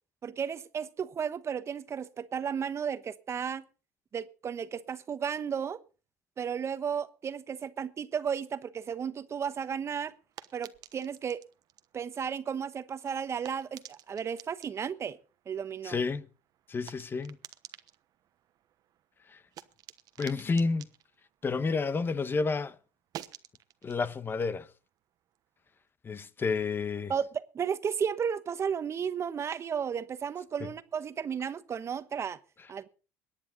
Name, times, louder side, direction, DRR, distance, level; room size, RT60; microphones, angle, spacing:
voice 1, 0.2-3.7 4.1-5.8 6.4-10.1 10.5-11.4 11.9-15.2 15.5-16.0 27.1-32.4 32.7-32.9, right 7 dB, 35° right, 1.1 m, -34 dB
sound 1, 9.5-22.3 22.6-25.8, right 12 dB, 55° right, 1.1 m, -52 dB
voice 2, 15.8-16.3 16.7-17.4 19.3-19.4 20.2-20.9 21.4-22.8 23.8-24.7 26.0-27.1 30.6-30.7, left 4 dB, 30° left, 1.1 m, -30 dB
22.5 x 9.6 x 4.0 m
supercardioid pair, 95°, 8 cm